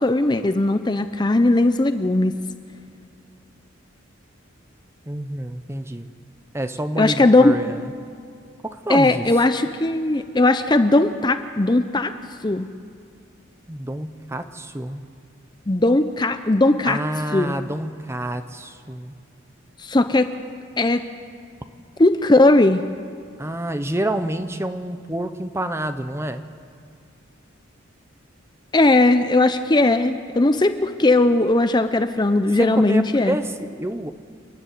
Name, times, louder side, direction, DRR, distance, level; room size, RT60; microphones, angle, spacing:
voice 1, 0.0-2.4 7.0-7.5 8.9-12.1 12.4-12.7 15.7-17.0 17.3-17.6 19.8-20.3 20.8-21.0 22.0-22.8 28.7-33.4, left 2 dB, 20° left, 9 dB, 0.6 m, -18 dB
voice 2, 5.1-6.1 6.5-7.9 8.6-9.3 13.7-15.0 16.8-19.1 23.4-26.4 32.6-34.1, right 1 dB, 15° right, 9 dB, 0.8 m, -28 dB
29.5 x 11.0 x 9.3 m, 2.3 s
head